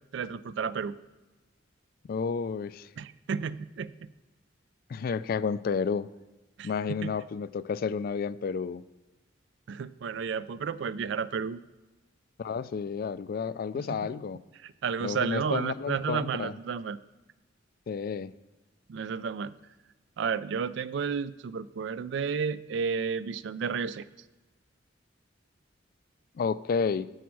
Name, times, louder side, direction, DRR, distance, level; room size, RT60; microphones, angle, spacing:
voice 1, 0.1-0.9 3.0-4.1 6.6-6.7 7.0-7.1 9.7-11.6 13.8-14.0 14.6-17.0 18.9-19.5 20.2-24.1, right 6 dB, 65° right, 16 dB, 0.3 m, -32 dB
voice 2, 2.1-2.9 4.9-6.1 6.6-8.8 12.4-14.4 15.0-16.5 17.9-18.3 26.3-27.1, left 5 dB, 50° left, 16 dB, 0.3 m, -31 dB
10.5 x 7.3 x 4.7 m, 1.1 s
head